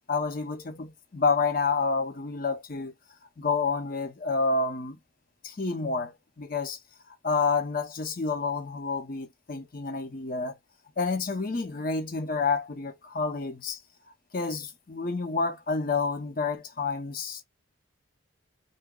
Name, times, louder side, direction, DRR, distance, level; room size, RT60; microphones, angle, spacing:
voice 1, 0.1-2.9 3.4-5.0 5.4-6.8 7.2-10.6 11.0-13.8 14.3-17.4, left 4 dB, 40° left, 0.7 m, -29 dB
2.9 x 2.2 x 3.6 m
head